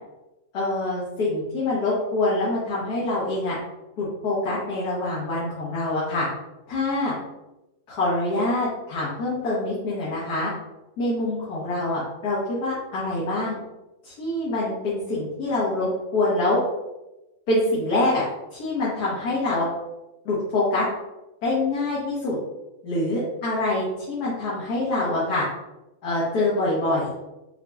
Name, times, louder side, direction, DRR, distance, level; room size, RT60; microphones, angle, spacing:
voice 1, 0.5-3.5 4.0-6.3 6.7-7.1 7.9-10.5 11.0-13.6 14.0-16.6 17.5-18.2 18.5-19.7 20.2-20.8 21.4-22.4 22.8-25.4 26.0-27.1, left 2 dB, 75° left, -8 dB, 1.7 m, -25 dB
6.3 x 2.8 x 2.4 m, 0.98 s
omnidirectional pair, 1.7 m